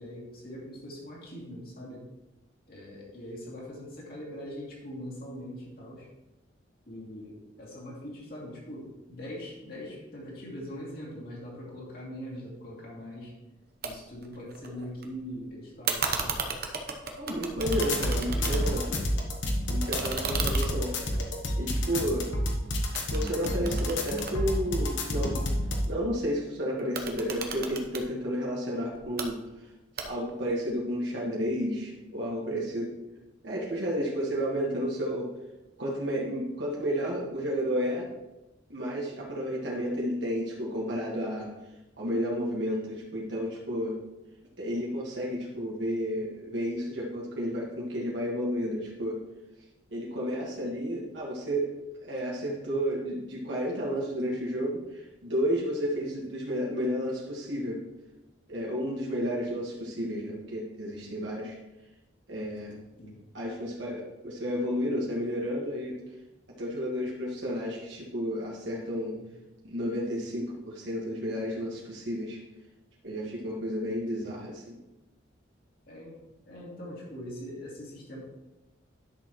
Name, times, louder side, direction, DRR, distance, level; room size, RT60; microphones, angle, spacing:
voice 1, 0.0-2.0 2.7-6.1 6.8-13.3 13.8-16.5 63.0-63.2 69.2-69.3 75.9-76.2 76.5-78.2, equal, 50° left, -4 dB, 2.7 m, -42 dB
sound 1, 13.8-13.9 14.2-15.0 15.8-18.9 19.3-22.5 22.9-25.2 26.8-28.1 28.9-29.3 30.0-30.4, right 5 dB, 55° right, 1.0 m, -35 dB
voice 2, 17.2-18.9 19.7-20.9 21.6-22.3 23.1-25.4 25.8-29.4 30.0-32.9 33.4-35.3 35.8-38.1 38.7-41.5 42.0-44.0 44.6-49.2 49.9-51.7 52.0-57.8 58.5-61.6 62.3-62.8 63.3-66.0 66.6-69.2 69.6-72.4 73.0-74.7, equal, 70° right, -4 dB, 1.7 m, -31 dB
sound 2, 17.6-25.9, left 1 dB, 70° left, 1.2 m, -29 dB
11.0 x 6.6 x 3.1 m, 1.0 s
head